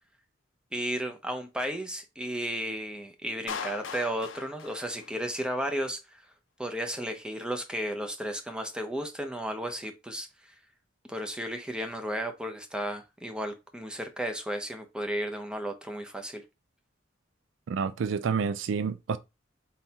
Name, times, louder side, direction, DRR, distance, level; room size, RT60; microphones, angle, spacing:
voice 1, 0.7-6.2 6.6-10.5 11.1-16.4, equal, 5° right, 0.6 m, -34 dB
Clapping, 3.5-5.5, left 6 dB, 70° left, 0.6 m, -39 dB
voice 2, 17.7-19.2, right 6 dB, 70° right, 0.4 m, -29 dB
4.0 x 3.7 x 2.8 m
head